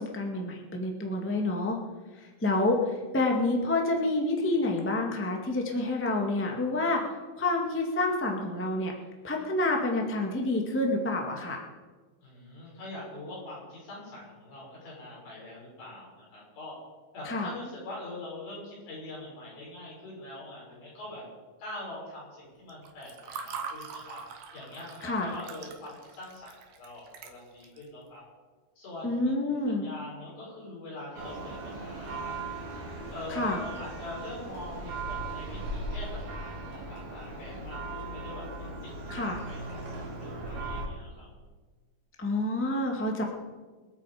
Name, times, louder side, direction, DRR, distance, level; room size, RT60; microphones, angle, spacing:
voice 1, 0.0-1.8 2.4-2.8 3.1-7.0 7.4-8.9 9.2-11.6 17.2-17.5 25.0-25.3 29.0-29.9 33.3-33.6 39.1-39.4 42.2-43.2, left 2 dB, 10° left, 1 dB, 0.6 m, -28 dB
voice 2, 12.2-16.7 17.1-21.2 21.6-24.2 24.5-28.2 28.8-29.1 29.4-32.4 33.1-38.9 39.2-41.3, left 1 dB, 75° left, -5 dB, 8.3 m, -43 dB
Water / Fill (with liquid), 22.7-27.8, right 6 dB, 80° right, 3.2 m, -43 dB
Church bell, 31.2-40.9, right 2 dB, 65° right, 4.3 m, -38 dB
26.0 x 8.7 x 5.1 m, 1.3 s
omnidirectional pair, 4.3 m